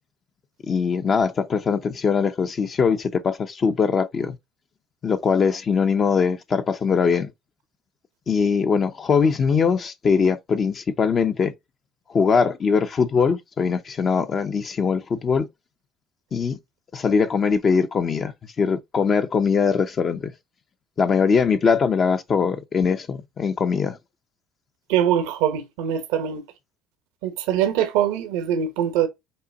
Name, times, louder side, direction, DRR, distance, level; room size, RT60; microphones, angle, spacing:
voice 1, 0.7-4.4 5.0-7.3 8.3-11.5 12.1-15.5 16.3-16.6 16.9-20.3 21.0-24.0, left 5 dB, 40° left, 0.6 m, -21 dB
voice 2, 24.9-26.4 27.2-29.1, right 9 dB, 85° right, 0.9 m, -23 dB
5.4 x 2.2 x 3.8 m
supercardioid pair, 90°, 0 cm